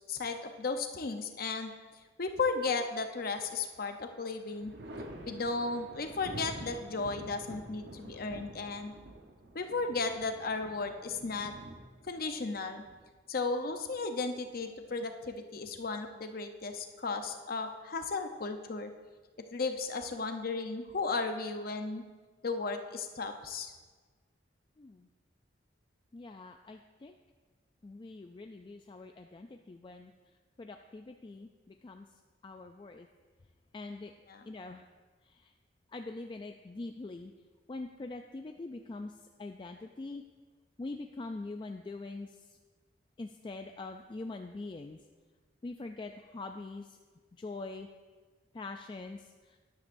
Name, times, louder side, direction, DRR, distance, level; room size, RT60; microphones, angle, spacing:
voice 1, 0.1-4.7 5.3-8.9 9.5-11.5 12.0-12.8 13.3-18.9 19.5-22.0 22.4-23.7 34.3-34.5, left 3 dB, 55° left, 6 dB, 0.8 m, -35 dB
Thunder, 3.0-3.8 4.1-13.7 15.2-16.0, right 1 dB, 60° right, 1.0 m, -48 dB
voice 2, 26.1-27.1 27.8-30.1 30.6-32.1 32.4-33.1 33.7-34.1 34.5-34.8 35.4-35.5 35.9-37.3 37.7-39.1 39.4-40.2 40.8-42.4 43.2-45.0 45.6-47.0 47.4-47.9 48.5-49.3, left 3 dB, 25° left, 5 dB, 0.3 m, -43 dB
13.0 x 10.5 x 2.6 m, 1.4 s
head